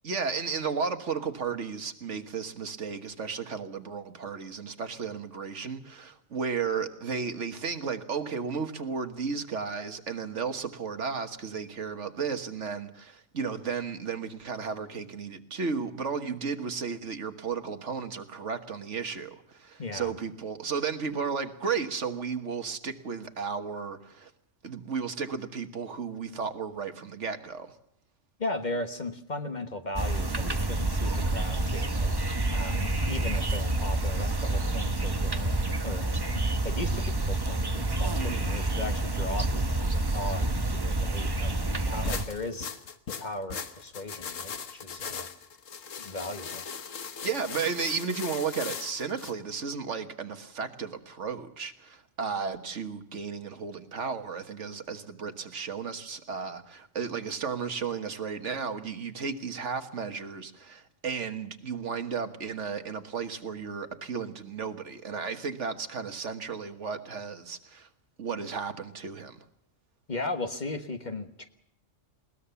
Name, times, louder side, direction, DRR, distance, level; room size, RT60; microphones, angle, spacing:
voice 1, 0.0-24.3 24.6-27.7 38.1-38.4 44.9-45.1 47.2-67.9 68.2-69.4, right 5 dB, 70° right, 1.7 m, -34 dB
voice 2, 19.8-20.1 28.4-32.1 32.5-36.1 36.5-42.7 43.1-45.3 46.0-46.7 70.1-71.5, left 2 dB, 35° left, 1.4 m, -37 dB
sound 1, 30.0-42.3, right 2 dB, 20° right, 1.0 m, -28 dB
sound 2, 42.0-49.3, left 6 dB, 85° left, 1.5 m, -39 dB
21.0 x 19.0 x 6.9 m
omnidirectional pair, 1.3 m